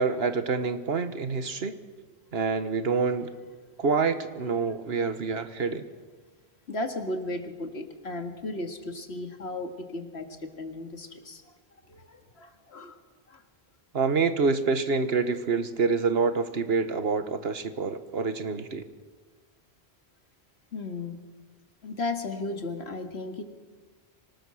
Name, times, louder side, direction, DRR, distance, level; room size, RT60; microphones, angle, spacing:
voice 1, 0.0-1.8 2.3-3.3 3.8-5.9 13.9-18.8, right 4 dB, 75° right, 11 dB, 1.5 m, -27 dB
voice 2, 6.7-11.5 11.8-13.0 13.3-13.4 20.7-21.2 21.8-23.4, left 2 dB, 80° left, 6 dB, 2.2 m, -35 dB
25.0 x 19.0 x 6.4 m, 1.4 s
omnidirectional pair, 1.1 m